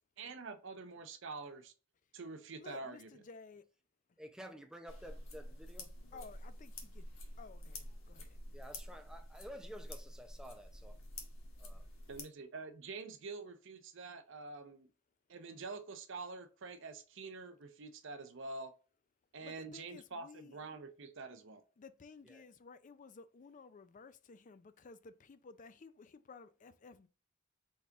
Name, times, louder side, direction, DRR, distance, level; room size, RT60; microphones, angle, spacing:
voice 1, 0.2-1.7 2.1-3.1 12.1-14.9 15.3-18.7 19.3-21.6, right 3 dB, 65° right, 0.7 m, -46 dB
voice 2, 2.6-3.6 6.1-7.0 7.4-8.6 19.4-20.6 21.8-27.1, left 4 dB, 40° left, 0.4 m, -55 dB
voice 3, 4.2-6.3 8.5-11.0 11.6-11.9 22.2-22.4, equal, 5° right, 0.6 m, -52 dB
sound 1, 4.9-12.2, left 1 dB, 75° left, 1.3 m, -49 dB
4.2 x 3.5 x 3.6 m
head